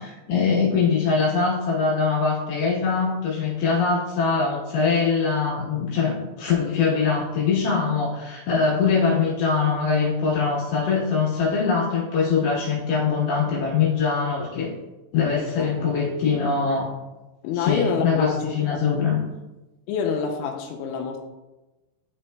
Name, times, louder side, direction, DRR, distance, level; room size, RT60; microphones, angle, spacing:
voice 1, 0.0-14.7 15.1-16.9 17.5-19.2, left 5 dB, 70° left, -6 dB, 2.9 m, -22 dB
voice 2, 15.3-15.9 17.4-18.9 19.9-21.2, left 6 dB, 85° left, 2 dB, 2.7 m, -28 dB
11.0 x 4.4 x 2.2 m, 1.1 s
omnidirectional pair, 5.8 m